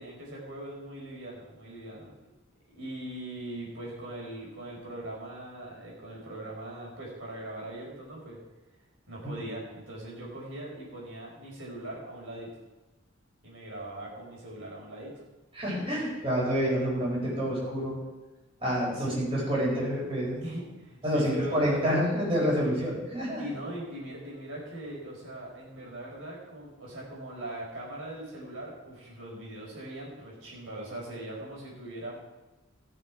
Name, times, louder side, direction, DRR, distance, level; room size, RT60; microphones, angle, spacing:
voice 1, 0.0-2.2 2.7-8.4 9.1-12.5 13.4-15.1 18.9-19.1 20.4-21.8 23.4-32.2, right 1 dB, 75° right, -3 dB, 4.6 m, -41 dB
voice 2, 15.5-17.9 18.6-20.4 21.0-23.4, equal, 30° right, -5 dB, 4.7 m, -28 dB
18.5 x 6.8 x 4.8 m, 1.1 s
head